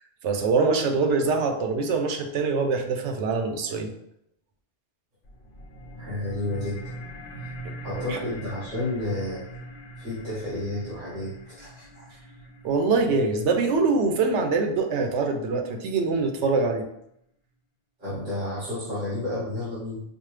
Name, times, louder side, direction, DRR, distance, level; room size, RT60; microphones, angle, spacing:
voice 1, 0.2-3.9 7.6-8.2 12.6-16.8, right 4 dB, 90° right, 5 dB, 0.9 m, -24 dB
sound 1, 5.2-16.2, right 1 dB, 65° left, 0.8 m, -43 dB
voice 2, 6.0-6.8 7.8-9.4 10.0-12.2 18.0-20.0, left 1 dB, 50° right, -10 dB, 1.8 m, -31 dB
5.2 x 2.0 x 3.2 m, 0.77 s
omnidirectional pair, 1.1 m